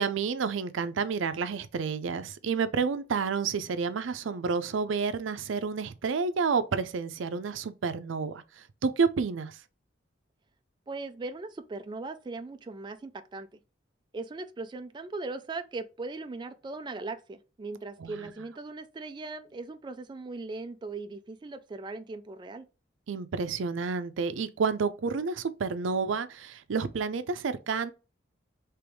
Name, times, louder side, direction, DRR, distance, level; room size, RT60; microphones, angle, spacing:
voice 1, 0.0-9.6 18.0-18.3 23.1-27.9, right 5 dB, 85° right, 0.5 m, -30 dB
voice 2, 10.9-13.6 14.1-22.7, right 3 dB, 25° right, 0.3 m, -39 dB
3.4 x 3.0 x 4.6 m
head